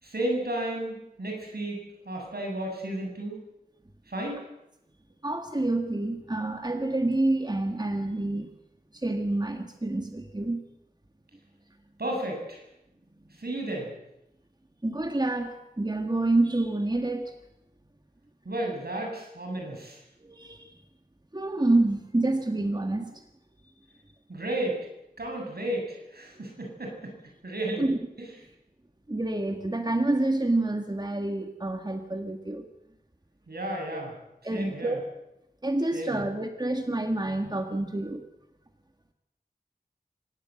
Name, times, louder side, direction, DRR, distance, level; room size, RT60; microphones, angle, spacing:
voice 1, 0.0-3.4 4.1-4.4 12.0-12.6 13.4-13.9 18.4-20.0 24.3-24.8 25.2-27.1 27.4-27.9 33.5-34.1 34.5-35.0 35.9-36.3, right 1 dB, 80° right, 1 dB, 7.8 m, -33 dB
voice 2, 5.2-8.5 8.9-10.7 14.8-17.3 20.2-20.7 21.3-23.2 27.8-28.0 29.1-32.7 34.4-35.0 35.6-38.2, right 2 dB, 25° right, 6 dB, 1.9 m, -28 dB
25.0 x 18.5 x 7.8 m, 0.86 s
wide cardioid pair, 45°, 16 cm